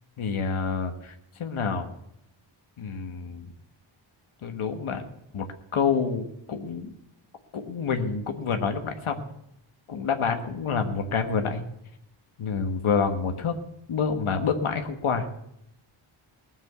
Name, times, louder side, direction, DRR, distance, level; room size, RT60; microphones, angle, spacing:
voice 1, 0.2-1.9 2.8-3.5 4.4-5.1 5.3-5.5 5.7-6.9 7.5-9.2 9.9-11.7 12.4-13.5 13.9-15.3, left 5 dB, 80° left, 5 dB, 1.4 m, -27 dB
19.5 x 7.4 x 6.8 m, 0.80 s
wide cardioid pair, 145°, 49 cm